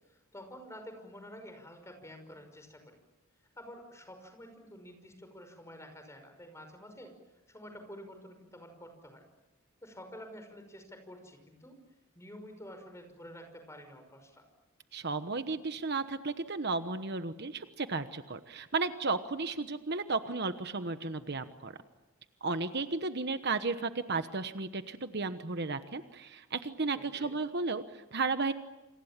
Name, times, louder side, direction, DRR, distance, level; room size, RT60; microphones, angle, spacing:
voice 1, 0.1-3.0 3.6-7.1 7.5-9.2 9.8-11.7 12.1-14.4 26.9-27.3, equal, 15° left, 6 dB, 5.6 m, -49 dB
voice 2, 14.9-21.8 22.4-28.5, right 3 dB, 50° right, 9 dB, 1.2 m, -34 dB
28.5 x 27.5 x 7.5 m, 1.0 s
head